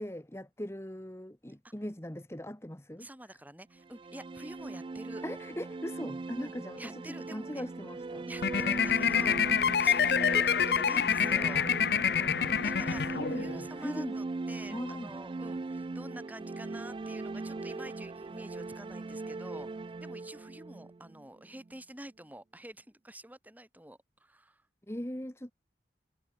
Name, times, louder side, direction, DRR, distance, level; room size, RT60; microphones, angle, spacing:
voice 1, 0.0-3.1 5.2-7.0 7.3-8.3 12.9-14.2 14.6-15.1 24.9-25.5, equal, 15° left, 1.5 m, -40 dB
voice 2, 3.0-5.2 6.4-7.7 8.3-11.7 12.6-19.7 20.0-24.6, right 1 dB, 10° right, 3.7 m, -48 dB
sound 1, 3.8-21.7, right 3 dB, 30° right, 0.3 m, -39 dB
sound 2, 8.4-13.6, left 7 dB, 65° left, 0.5 m, -27 dB
head